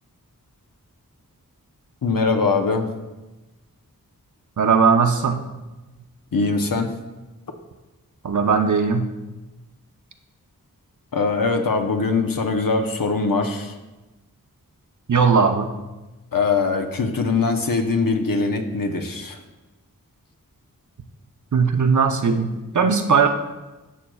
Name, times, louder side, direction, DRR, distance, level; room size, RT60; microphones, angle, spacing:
voice 1, 2.0-2.9 6.3-6.9 11.1-13.7 16.3-19.4, left 4 dB, 70° left, 5 dB, 0.8 m, -22 dB
voice 2, 4.6-5.4 8.2-9.1 15.1-15.7 21.5-23.3, right 5 dB, 55° right, 6 dB, 0.7 m, -18 dB
11.0 x 7.5 x 2.3 m, 1.1 s
wide cardioid pair, 60°, 35 cm